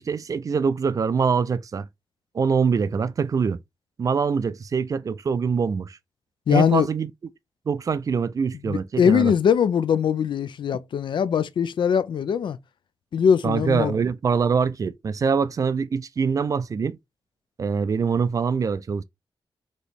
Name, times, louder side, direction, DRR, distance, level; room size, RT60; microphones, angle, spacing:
voice 1, 0.0-1.9 2.3-3.6 4.0-6.0 6.5-7.1 7.7-9.3 13.4-17.0 17.6-19.0, right 5 dB, 40° right, 0.3 m, -24 dB
voice 2, 6.5-6.9 8.7-12.6 13.1-14.0, left 7 dB, 70° left, 0.3 m, -21 dB
4.1 x 3.0 x 3.4 m
wide cardioid pair, 150°, 8 cm